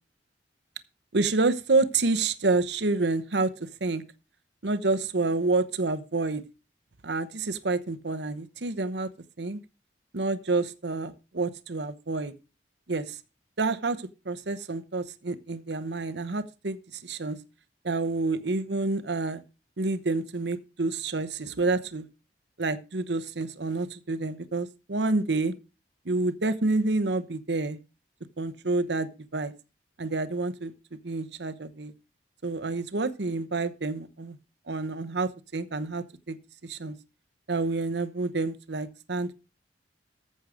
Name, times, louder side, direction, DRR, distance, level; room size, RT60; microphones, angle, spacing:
voice 1, 1.1-4.0 4.6-6.4 7.0-9.1 9.4-9.6 10.1-12.3 12.9-13.2 13.6-17.4 17.8-19.4 19.8-22.1 22.6-25.5 26.0-27.8 28.4-29.5 30.0-31.9 32.4-34.4 34.7-36.4 36.6-37.0 37.5-39.3, right 3 dB, 70° right, 0.9 m, -28 dB
14.5 x 6.4 x 5.0 m
head